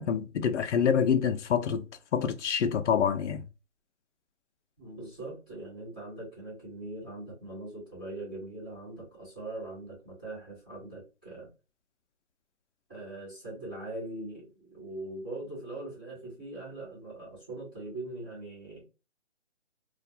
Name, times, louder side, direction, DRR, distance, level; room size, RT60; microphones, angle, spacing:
voice 1, 0.0-1.9 2.1-3.4, left 7 dB, 70° left, 0.5 m, -26 dB
voice 2, 4.8-11.5 12.9-18.8, right 2 dB, 10° right, 1.0 m, -41 dB
2.4 x 2.1 x 2.7 m
hypercardioid pair, 175°, 36 cm